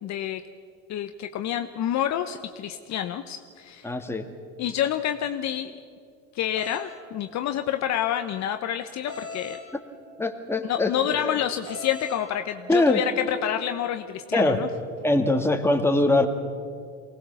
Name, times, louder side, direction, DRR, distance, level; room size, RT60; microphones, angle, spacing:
voice 1, 0.0-0.4 0.9-3.9 4.6-5.8 6.3-9.6 10.6-14.7, left 10 dB, 45° left, 8 dB, 1.0 m, -28 dB
voice 2, 3.8-4.3 9.7-9.8 10.2-11.4 12.7-13.0 14.3-14.6 15.0-16.3, left 2 dB, 5° left, 4 dB, 2.1 m, -22 dB
sound 1, 6.6-6.8 9.1-9.6 11.7-12.2, left 3 dB, 75° right, 5.7 m, -37 dB
23.5 x 18.5 x 7.0 m, 2.3 s
hypercardioid pair, 80°, 39 cm